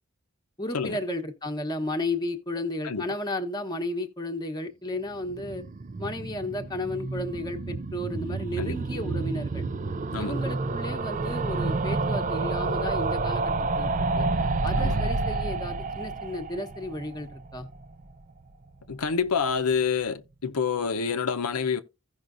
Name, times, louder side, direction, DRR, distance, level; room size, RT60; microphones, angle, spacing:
voice 1, 0.6-5.7 6.0-9.6 10.1-14.3 14.6-17.7, left 1 dB, 20° left, 1.0 m, -33 dB
sound 1, 5.1-18.2 18.5-18.6 18.8-18.9 19.1-19.2, right 3 dB, 35° right, 0.4 m, -29 dB
voice 2, 18.9-21.8, left 6 dB, 85° left, 0.7 m, -27 dB
15.5 x 5.7 x 2.6 m
head